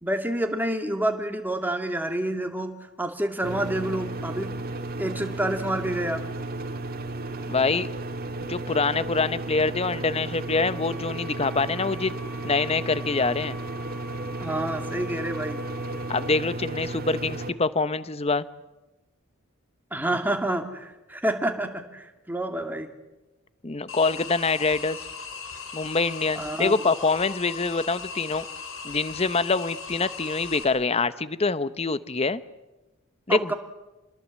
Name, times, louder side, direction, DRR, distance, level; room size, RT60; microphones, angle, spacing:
voice 1, 0.0-4.6 5.0-6.2 14.4-15.6 19.9-22.9 26.4-26.7 33.3-33.5, right 1 dB, 10° right, 5 dB, 2.2 m, -28 dB
sound 1, 3.4-17.5, right 2 dB, 45° right, 2.0 m, -34 dB
voice 2, 7.5-7.9 8.5-12.2 12.4-13.6 16.1-18.4 23.6-25.0 25.7-28.5 28.8-32.4 33.3-33.5, left 4 dB, 30° left, 15 dB, 0.8 m, -25 dB
sound 2, 9.9-16.3, left 3 dB, 10° left, 3.4 m, -46 dB
sound 3, 23.9-30.6, left 5 dB, 65° left, 4.8 m, -38 dB
27.5 x 21.0 x 7.5 m, 1.1 s
head